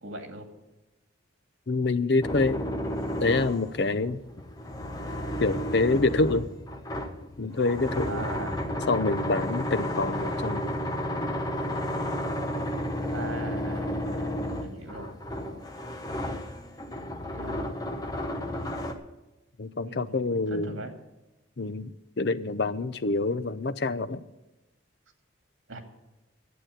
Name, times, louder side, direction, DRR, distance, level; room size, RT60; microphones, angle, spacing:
voice 1, 0.0-0.5 8.1-8.6 13.1-15.6 17.3-17.7 19.8-20.1 20.5-20.9 25.7-25.8, right 2 dB, 80° right, 3 dB, 2.4 m, -40 dB
voice 2, 1.7-2.6 3.2-4.2 5.4-6.5 7.4-8.2 8.9-10.7 19.6-20.8 21.6-24.2, left 3 dB, 55° left, 12 dB, 0.6 m, -26 dB
sound 1, 2.2-18.9, equal, 20° left, 1.1 m, -32 dB
11.5 x 8.4 x 9.0 m, 1.0 s
head